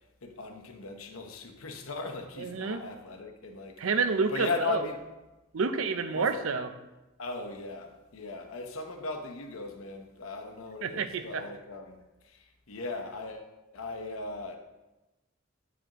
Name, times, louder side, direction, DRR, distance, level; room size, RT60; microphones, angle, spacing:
voice 1, 0.2-3.8 4.3-5.0 6.1-6.4 7.2-12.0 12.2-14.6, left 3 dB, 90° left, 0.9 m, -38 dB
voice 2, 2.4-2.8 3.8-4.8 5.5-6.7 10.8-11.4, right 4 dB, 75° right, 0.6 m, -29 dB
9.1 x 5.0 x 2.9 m
head